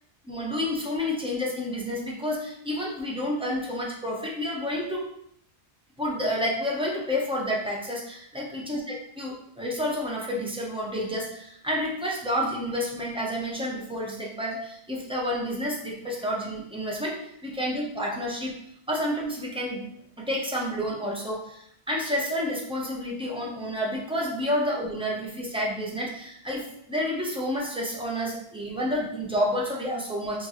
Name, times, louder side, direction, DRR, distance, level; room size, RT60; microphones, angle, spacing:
voice 1, 0.2-5.1 6.0-8.8 9.2-18.6 18.9-19.8 20.2-30.5, equal, 5° right, -3 dB, 0.6 m, -30 dB
4.4 x 2.6 x 2.9 m, 0.70 s
omnidirectional pair, 1.1 m